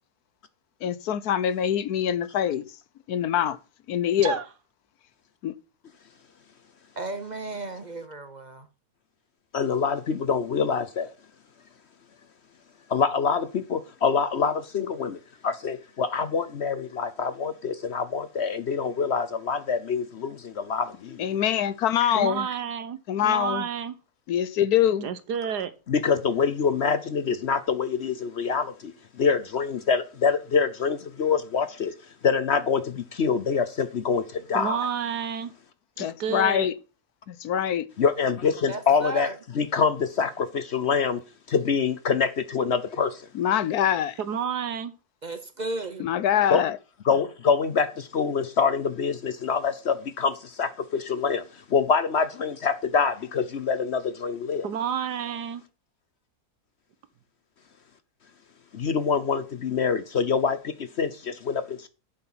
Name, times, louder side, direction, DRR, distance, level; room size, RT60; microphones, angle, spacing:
voice 1, 0.8-2.7 3.1-3.6 3.9-4.4 5.4-5.5 21.2-22.5 23.1-23.7 24.3-25.1 36.0-36.7 37.3-37.9 43.3-44.2 46.0-46.8, left 10 dB, 75° left, 1.2 m, -24 dB
voice 2, 7.0-8.7 38.7-39.4 45.2-46.1, right 2 dB, 35° right, 0.8 m, -34 dB
voice 3, 9.5-11.1 12.9-21.2 25.9-31.9 32.2-34.8 38.0-41.2 41.5-43.3 46.5-46.6 47.0-51.4 51.7-54.7 58.7-61.9, left 6 dB, 55° left, 0.9 m, -25 dB
voice 4, 22.1-23.0 23.2-24.0 25.0-25.7 34.5-35.5 36.0-36.7 44.2-44.9 54.6-55.6, right 8 dB, 90° right, 1.7 m, -30 dB
10.0 x 7.8 x 5.7 m
omnidirectional pair, 1.7 m